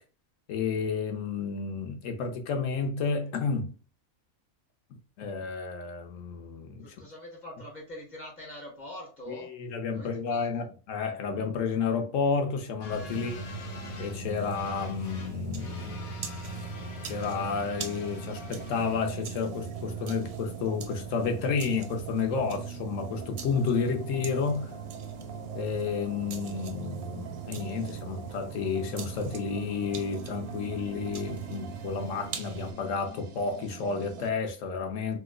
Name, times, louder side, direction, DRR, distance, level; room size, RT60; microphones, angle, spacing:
voice 1, 0.5-3.8 5.2-6.9 9.3-13.5 14.0-16.0 17.0-24.7 25.5-35.2, left 5 dB, 70° left, 1.0 m, -31 dB
voice 2, 6.8-9.5 9.9-10.5 13.1-13.5, left 1 dB, 35° left, 1.0 m, -44 dB
sound 1, 12.8-30.3, left 3 dB, 85° left, 1.2 m, -45 dB
sound 2, 12.9-32.7, right 8 dB, 65° right, 0.7 m, -40 dB
sound 3, 17.3-34.3, right 4 dB, 85° right, 1.1 m, -45 dB
3.0 x 2.1 x 3.6 m
omnidirectional pair, 1.5 m